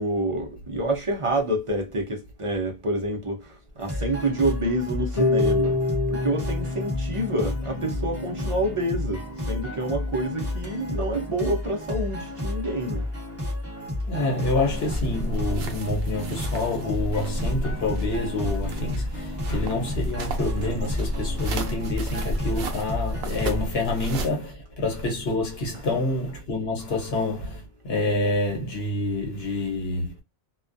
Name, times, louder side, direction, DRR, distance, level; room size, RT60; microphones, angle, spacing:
voice 1, 0.0-5.8 6.1-13.1 25.7-25.8, right 1 dB, 40° right, 0.5 m, -28 dB
sound 1, 3.8-23.6, left 1 dB, 15° right, 1.0 m, -32 dB
Harp, 5.2-11.2, left 3 dB, 50° left, 0.4 m, -29 dB
voice 2, 14.1-30.1, left 2 dB, 70° left, 1.1 m, -27 dB
sound 2, 14.5-24.3, equal, 70° right, 0.8 m, -32 dB
2.2 x 2.2 x 2.5 m
omnidirectional pair, 1.1 m